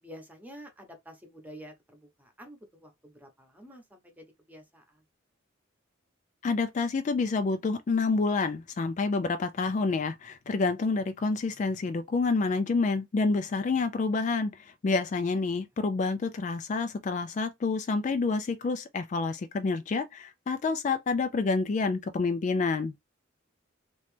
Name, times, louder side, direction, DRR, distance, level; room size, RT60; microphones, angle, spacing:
voice 1, 0.0-5.0, equal, 10° right, 0.9 m, -49 dB
voice 2, 6.4-22.9, left 4 dB, 40° left, 0.3 m, -28 dB
3.1 x 2.8 x 3.2 m
head